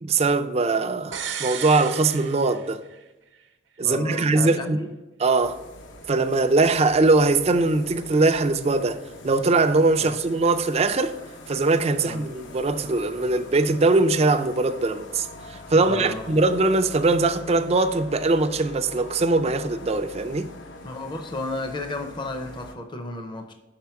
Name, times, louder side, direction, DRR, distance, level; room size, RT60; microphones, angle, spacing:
voice 1, 0.0-2.8 3.8-4.8 5.2-5.6 6.1-11.1 11.5-20.5, right 3 dB, 35° right, 0.4 m, -21 dB
sound 1, 1.1-3.0 3.3-3.4, right 7 dB, 85° right, 0.8 m, -34 dB
voice 2, 3.8-4.9 10.0-10.1 12.0-12.2 15.8-16.3 20.8-23.5, left 2 dB, 25° left, 0.6 m, -33 dB
sound 2, 5.4-22.8, left 2 dB, 80° left, 0.9 m, -44 dB
5.8 x 4.9 x 5.7 m
head